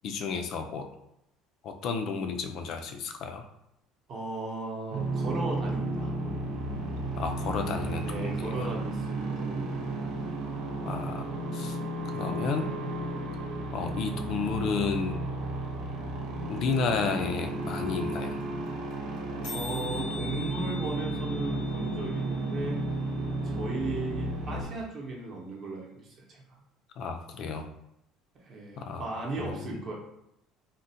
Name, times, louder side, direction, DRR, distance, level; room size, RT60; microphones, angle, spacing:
voice 1, 0.0-0.9 1.6-3.4 7.2-8.7 10.8-11.8 12.0-12.7 13.7-15.2 16.5-18.4 27.0-27.7 28.8-29.0 29.4-29.8, left 5 dB, 50° left, 6 dB, 0.4 m, -32 dB
voice 2, 4.1-6.1 8.0-10.0 19.5-22.9 23.4-26.6 28.4-29.9, right 2 dB, 35° right, -2 dB, 0.7 m, -36 dB
sound 1, 4.9-24.6, right 2 dB, 75° right, 0.7 m, -33 dB
sound 2, 17.4-17.5 17.6-17.7 17.9-18.1 18.4-18.5 18.7-18.9 19.2-19.3 19.4-23.4, left 5 dB, 75° left, 0.7 m, -43 dB
3.7 x 2.1 x 2.7 m, 0.81 s
cardioid pair, 155°, 0 cm